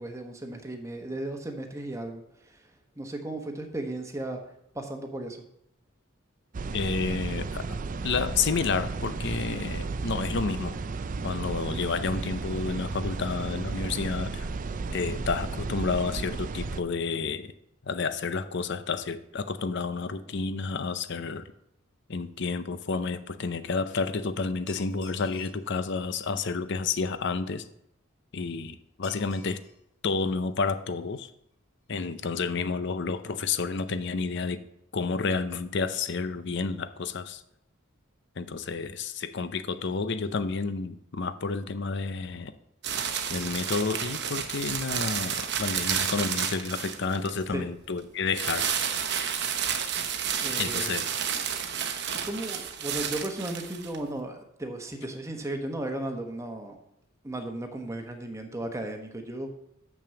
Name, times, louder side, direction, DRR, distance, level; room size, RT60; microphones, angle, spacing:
voice 1, 0.0-2.7 3.0-4.4 4.7-5.4 47.5-47.7 50.4-50.9 52.2-56.8 57.2-59.5, right 1 dB, 15° right, 4 dB, 1.1 m, -35 dB
sound 1, 6.5-16.8, right 3 dB, 40° right, 0.4 m, -33 dB
voice 2, 6.7-7.7 8.0-10.8 11.2-14.5 14.9-17.5 17.8-21.5 22.1-27.7 28.3-29.6 30.0-31.3 31.9-34.6 34.9-37.4 38.4-42.5 43.3-48.9 50.6-51.0, left 4 dB, 55° left, 12 dB, 0.6 m, -30 dB
sound 2, 24.7-25.6 29.0-29.8 30.1-30.2 31.1-31.2 31.5-31.6 31.9-32.0 32.3-32.4, left 3 dB, 85° left, 2.8 m, -52 dB
sound 3, 42.8-47.4 48.3-54.0, right 8 dB, 55° right, 0.9 m, -31 dB
6.9 x 6.1 x 7.0 m, 0.77 s
head